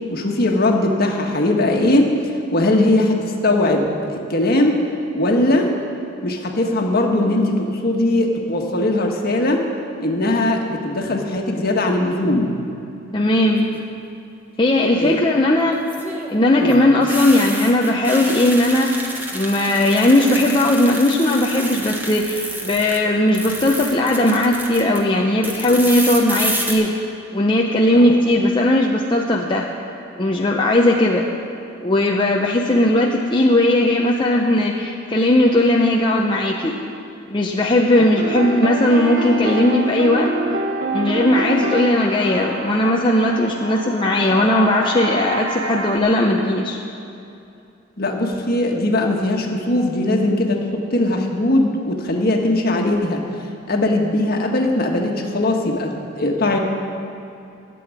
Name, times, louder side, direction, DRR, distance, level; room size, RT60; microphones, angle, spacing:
voice 1, 0.1-2.2 2.5-4.8 5.1-5.7 6.2-9.7 10.0-12.5 15.0-15.2 16.6-16.8 27.9-28.0 38.0-38.1 48.0-53.2 53.7-56.6, left 1 dB, 50° left, 1 dB, 1.5 m, -19 dB
voice 2, 13.1-13.7 14.6-15.8 16.3-19.0 19.3-27.0 27.3-29.7 30.2-31.3 31.8-36.8 37.3-40.3 40.9-46.8, left 1 dB, 25° left, -1 dB, 0.7 m, -17 dB
sound 1, 13.4-13.9 15.7-23.0 23.3-25.0 25.4-26.7, right 1 dB, 10° right, 1.4 m, -29 dB
sound 2, 38.2-46.0, right 1 dB, 80° right, 1.1 m, -26 dB
12.5 x 7.7 x 9.7 m, 2.7 s
head